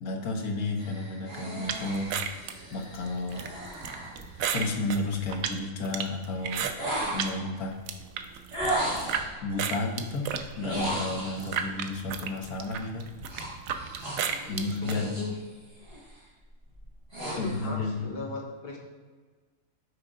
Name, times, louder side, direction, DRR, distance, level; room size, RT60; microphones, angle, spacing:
voice 1, 0.0-2.1 2.7-3.5 4.5-6.7 7.1-7.8 9.4-10.3 10.6-13.1 14.5-15.1 17.4-18.1, left 2 dB, 80° left, 3 dB, 1.4 m, -32 dB
sound 1, 0.8-5.0 6.7-7.5 8.5-9.3 10.5-11.6 13.3-15.4 15.7-16.1 16.7-17.7, right 1 dB, 25° right, 2.1 m, -35 dB
sound 2, 1.7-7.3 7.7-9.2 9.6-15.0, right 8 dB, 75° right, 1.0 m, -34 dB
voice 2, 14.2-15.3 17.2-18.8, left 3 dB, 45° left, -1 dB, 1.4 m, -38 dB
6.5 x 3.5 x 5.0 m, 1.4 s
omnidirectional pair, 1.5 m